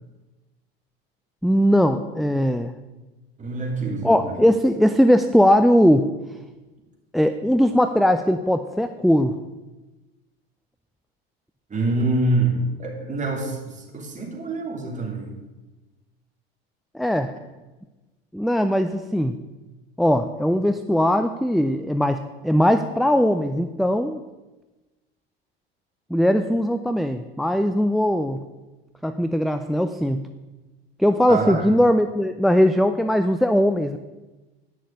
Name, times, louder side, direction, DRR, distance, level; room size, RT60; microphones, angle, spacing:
voice 1, 1.4-2.7 4.0-6.1 7.1-9.3 16.9-17.3 18.3-19.4 20.0-24.2 26.1-28.4 29.0-30.3 31.0-34.0, equal, ahead, 9 dB, 0.3 m, -20 dB
voice 2, 3.4-4.4 11.7-15.4 31.3-31.7, right 2 dB, 25° right, 0 dB, 2.9 m, -26 dB
9.6 x 6.2 x 6.7 m, 1.1 s
hypercardioid pair, 80°, 30 cm